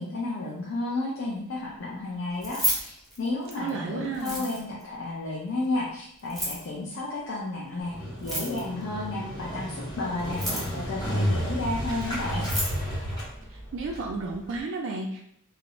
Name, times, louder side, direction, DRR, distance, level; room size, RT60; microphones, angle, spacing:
voice 1, 0.0-12.5, left 2 dB, 55° left, -4 dB, 0.5 m, -32 dB
Keys jangling, 2.3-3.7 4.1-4.8 6.2-6.7 8.1-8.8 10.2-10.8 12.0-12.1 12.3-12.8, right 1 dB, ahead, 0.6 m, -31 dB
voice 2, 3.6-4.4 13.7-15.2, right 3 dB, 60° right, 0 dB, 0.3 m, -32 dB
Motorcycle, 7.8-14.6, equal, 15° left, 1.0 m, -32 dB
2.4 x 2.0 x 2.9 m, 0.70 s
head